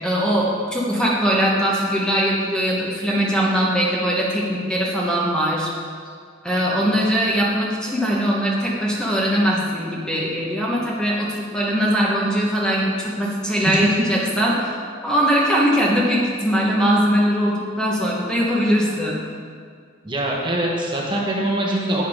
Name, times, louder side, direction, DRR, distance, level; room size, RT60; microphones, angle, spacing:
voice 1, 0.0-5.7 6.4-14.8 15.0-19.2, equal, 5° left, -4 dB, 1.2 m, -21 dB
voice 2, 13.6-14.0 20.0-22.1, right 1 dB, 25° right, -2 dB, 1.2 m, -23 dB
10.5 x 8.9 x 3.6 m, 2.1 s
head